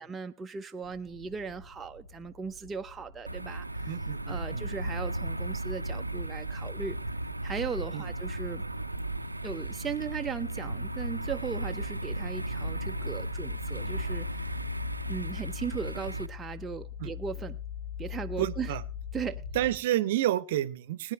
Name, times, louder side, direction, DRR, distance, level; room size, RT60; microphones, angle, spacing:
voice 1, 0.0-4.0 4.3-7.0 7.4-8.6 9.4-14.4 15.1-17.6 18.0-18.7 19.1-19.4, right 6 dB, 15° right, 0.5 m, -37 dB
sound 1, 0.8-19.8, left 8 dB, 70° left, 1.6 m, -43 dB
sound 2, 3.3-16.3, right 2 dB, 85° right, 0.5 m, -35 dB
voice 2, 3.9-4.6 7.9-8.1 17.0-17.1 18.4-18.8 19.5-21.1, right 13 dB, 55° right, 0.7 m, -30 dB
20.5 x 9.7 x 3.1 m
figure-of-eight pair, 90°, 0 cm